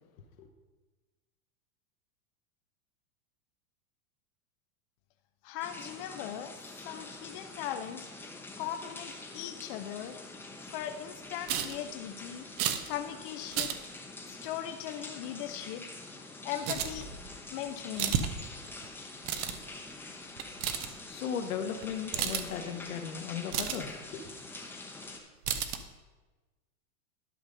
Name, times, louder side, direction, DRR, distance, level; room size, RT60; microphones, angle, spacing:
voice 1, 5.4-8.1 8.6-10.2 10.6-12.5 12.9-13.8 14.3-15.8 16.4-17.1 17.5-18.2, left 10 dB, 40° left, 7 dB, 0.5 m, -39 dB
sound 1, 5.6-25.2, left 2 dB, 5° left, 0.8 m, -46 dB
sound 2, 11.5-11.7 12.6-12.9 13.5-13.7 16.6-17.3 18.0-18.3 18.6-18.9 19.2-19.6 20.4-20.9 21.8-21.9 22.1-22.5 23.1-23.2 23.5-23.8 25.0-25.1 25.4-25.8, right 9 dB, 25° right, 0.4 m, -32 dB
voice 2, 21.1-24.2, left 7 dB, 80° left, 5 dB, 1.4 m, -36 dB
11.0 x 5.3 x 5.2 m, 1.2 s
supercardioid pair, 145°, 41 cm